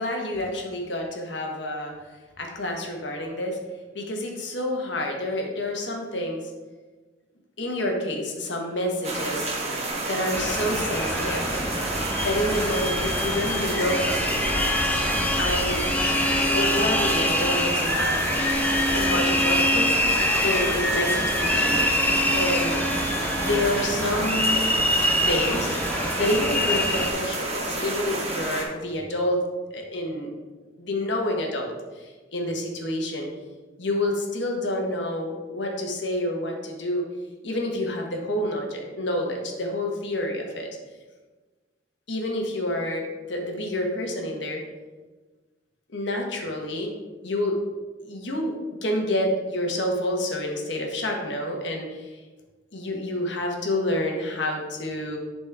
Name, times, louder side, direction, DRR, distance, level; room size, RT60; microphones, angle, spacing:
voice 1, 0.0-1.9 2.4-3.6 3.9-6.5 7.6-9.5 10.1-11.5 12.2-14.9 15.4-15.8 16.5-18.2 18.9-21.8 22.3-22.8 23.4-24.8 25.2-25.7 26.2-29.4 29.7-30.3 30.8-33.3 33.8-37.0 37.4-40.7 42.1-44.6 45.9-46.9 47.2-47.6 48.0-48.5 48.8-52.2 52.7-55.2, left 1 dB, 70° left, 1 dB, 1.3 m, -28 dB
sound 1, 9.0-28.6, right 2 dB, 35° right, 1.3 m, -30 dB
sound 2, 10.3-27.1, left 1 dB, 10° left, 0.6 m, -25 dB
10.5 x 4.3 x 3.5 m, 1.3 s
head